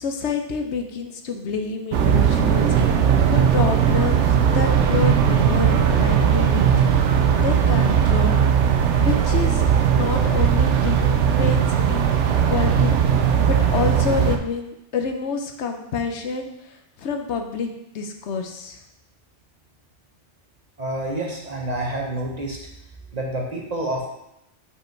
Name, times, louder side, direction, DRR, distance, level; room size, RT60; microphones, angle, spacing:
voice 1, 0.0-6.6 6.9-7.1 7.4-8.4 9.0-11.6 11.9-18.8, left 5 dB, 70° left, 5 dB, 1.0 m, -28 dB
sound 1, 1.9-14.4, right 8 dB, 80° right, 1.0 m, -18 dB
voice 2, 20.8-22.6 23.1-24.1, right 1 dB, 35° right, -1 dB, 1.1 m, -28 dB
5.4 x 5.1 x 4.5 m, 0.83 s
omnidirectional pair, 1.2 m